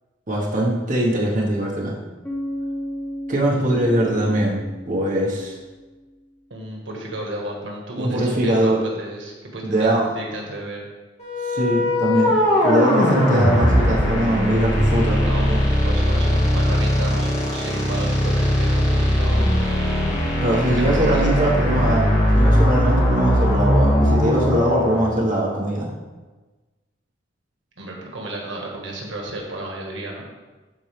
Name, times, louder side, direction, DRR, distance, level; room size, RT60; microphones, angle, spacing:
voice 1, 0.3-2.0 3.3-5.6 8.0-8.8 9.6-10.1 11.4-15.6 20.4-25.9, right 1 dB, 45° right, -4 dB, 1.5 m, -22 dB
Bass guitar, 2.2-6.1, equal, 10° left, 1.1 m, -33 dB
voice 2, 6.5-10.8 15.2-15.5 15.8-19.5 20.6-21.2 27.8-30.3, right 1 dB, 85° right, -1 dB, 1.7 m, -33 dB
sound 1, 11.2-25.1, equal, 40° left, 2.0 m, -19 dB
13.0 x 4.6 x 3.5 m, 1.2 s
head